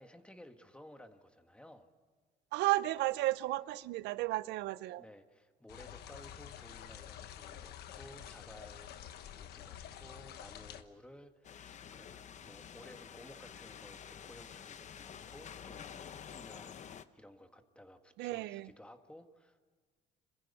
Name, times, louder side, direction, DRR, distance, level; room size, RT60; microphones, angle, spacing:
voice 1, 0.0-1.9 5.0-19.7, left 1 dB, 5° left, 7 dB, 1.6 m, -56 dB
voice 2, 2.5-5.0 18.2-18.7, right 17 dB, 85° right, 18 dB, 0.6 m, -33 dB
sound 1, 5.7-10.8, left 10 dB, 75° left, 1.3 m, -49 dB
sound 2, 11.4-17.0, left 8 dB, 45° left, 0.8 m, -49 dB
27.5 x 15.5 x 8.4 m, 1.5 s
cardioid pair, 110°, 17 cm